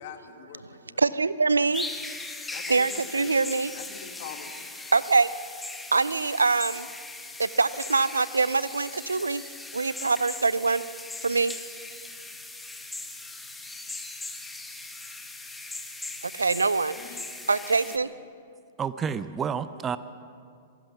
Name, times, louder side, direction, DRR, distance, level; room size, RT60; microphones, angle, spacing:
voice 1, 0.0-1.0 2.5-3.4 3.7-4.5 17.0-17.4 17.8-18.0, left 8 dB, 50° left, 2.2 m, -44 dB
voice 2, 1.0-1.9 2.7-3.7 4.9-5.3 5.9-6.9 7.4-9.4 9.7-10.8 11.2-11.5 16.3-16.9 17.5-18.1, right 4 dB, 80° right, 0.5 m, -24 dB
sound 1, 1.7-18.0, left 2 dB, 5° left, 1.5 m, -39 dB
voice 3, 18.8-20.0, right 7 dB, 20° right, 0.7 m, -29 dB
26.0 x 18.0 x 5.8 m
figure-of-eight pair, 105°, 0 cm